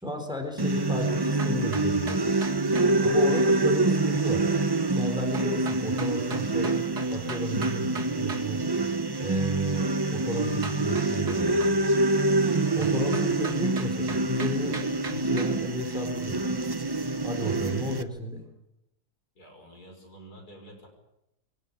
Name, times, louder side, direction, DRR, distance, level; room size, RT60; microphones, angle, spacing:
voice 1, 0.0-2.4 3.0-4.5 5.0-6.7 7.1-8.7 9.2-11.8 12.8-16.4 17.2-18.4, equal, ahead, 4 dB, 4.0 m, -33 dB
sound 1, 0.6-18.0, right 2 dB, 20° right, 0.7 m, -26 dB
sound 2, 1.4-2.9 5.3-8.5 10.6-11.8 12.8-15.5, right 4 dB, 80° right, 3.0 m, -39 dB
voice 2, 19.3-20.9, right 1 dB, 70° left, 3 dB, 6.0 m, -49 dB
23.0 x 18.0 x 8.6 m, 0.86 s
omnidirectional pair, 1.7 m